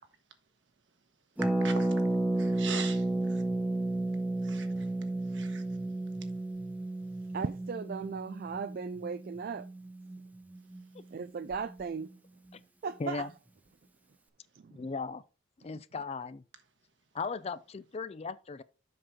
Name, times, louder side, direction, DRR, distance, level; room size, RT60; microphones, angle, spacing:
Harp, 1.4-11.0 11.3-11.4 11.5-11.8, right 2 dB, 10° right, 0.7 m, -32 dB
voice 1, 2.4-3.4 4.4-4.9 5.3-5.6, right 6 dB, 65° right, 1.4 m, -41 dB
voice 2, 7.3-9.7 11.1-12.1 12.8-13.3 14.5-14.8, right 5 dB, 50° right, 0.4 m, -37 dB
voice 3, 13.0-13.3 14.7-15.2 15.6-16.4 17.1-18.6, left 4 dB, 30° left, 0.4 m, -37 dB
7.7 x 6.1 x 3.7 m
head